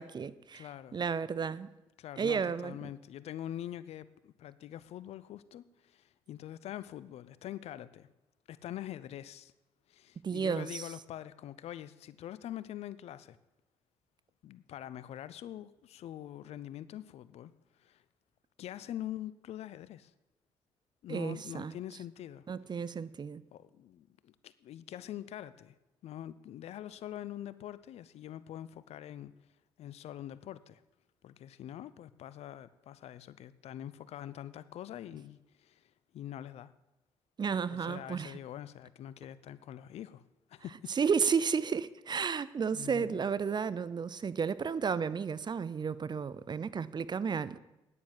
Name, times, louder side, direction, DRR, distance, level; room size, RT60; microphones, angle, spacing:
voice 1, 0.0-1.7 2.2-2.8 10.2-10.9 21.1-21.7 22.5-23.4 37.4-38.4 40.9-47.6, right 6 dB, 40° right, 0.6 m, -32 dB
voice 2, 0.5-1.0 2.0-8.1 8.5-9.5 9.9-13.4 14.4-17.5 17.8-18.0 18.6-20.1 21.0-22.4 23.5-25.8 26.0-29.3 29.8-30.8 31.2-36.7 37.7-40.2 40.5-40.9 42.7-43.2, left 11 dB, 65° left, 0.6 m, -44 dB
9.7 x 9.5 x 7.4 m
hypercardioid pair, 50°, 11 cm